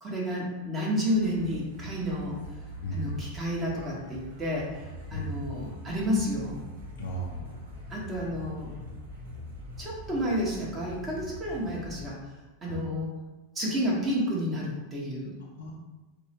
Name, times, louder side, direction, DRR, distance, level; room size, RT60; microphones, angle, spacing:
voice 1, 0.0-2.4 2.9-4.8 5.1-6.6 7.9-8.7 9.8-12.2 12.6-13.1 13.5-15.4, equal, 20° right, -5 dB, 1.3 m, -30 dB
sound 1, 1.1-12.1, equal, 85° right, 0.8 m, -43 dB
voice 2, 2.8-3.2 5.1-5.6 7.0-7.7 12.6-12.8 15.4-15.7, right 1 dB, 85° left, -3 dB, 0.5 m, -36 dB
4.5 x 2.2 x 2.9 m, 1.2 s
hypercardioid pair, 110°, 0 cm